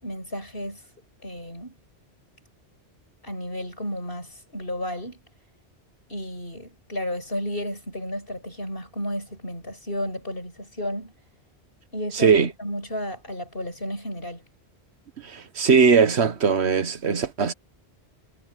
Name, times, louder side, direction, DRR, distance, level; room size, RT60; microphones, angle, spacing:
voice 1, 0.0-0.8 1.2-1.8 3.2-5.2 6.1-11.1 11.9-12.3 12.6-14.4, left 1 dB, 60° left, 7.9 m, -32 dB
voice 2, 12.1-12.5 15.2-17.5, right 5 dB, 85° right, 1.5 m, -20 dB
omnidirectional pair, 1.1 m